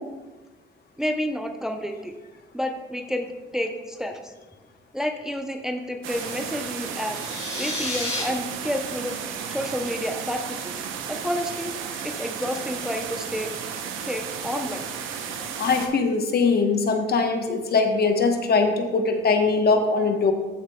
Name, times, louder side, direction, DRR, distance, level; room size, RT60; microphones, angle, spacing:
voice 1, 1.0-2.1 2.5-4.3 4.9-7.3 7.6-9.2 9.5-10.7 11.1-11.7 12.0-13.5 14.0-14.9, equal, 5° right, 4 dB, 0.6 m, -30 dB
sound 1, 6.0-15.9, right 7 dB, 90° right, 0.8 m, -33 dB
sound 2, 7.0-8.2, left 2 dB, 30° left, 2.9 m, -31 dB
voice 2, 15.6-20.3, left 4 dB, 50° left, 5 dB, 1.1 m, -21 dB
13.0 x 6.5 x 2.3 m, 1.2 s
cardioid pair, 90°, 20 cm